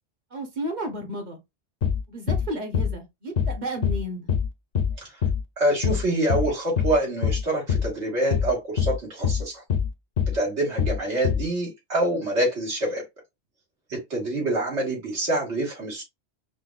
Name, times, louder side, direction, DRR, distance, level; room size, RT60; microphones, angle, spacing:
voice 1, 0.3-1.4 2.1-4.3, right 1 dB, 45° right, 0.9 m, -32 dB
sound 1, 1.8-2.0 2.3-2.5 2.7-2.9 3.4-3.6 3.8-4.0 4.3-4.5 4.7-4.9 5.2-5.4 5.8-6.0 6.3-6.5 6.8-7.0 7.2-7.4 7.7-7.9 8.3-8.5 8.8-9.0 9.2-9.4 9.7-9.9 10.2-10.4 10.8-11.0 11.2-11.4, left 7 dB, 60° left, 0.7 m, -23 dB
voice 2, 5.6-9.6 10.3-13.0 13.9-16.0, right 1 dB, 85° right, 1.9 m, -26 dB
5.1 x 2.2 x 2.4 m
omnidirectional pair, 1.1 m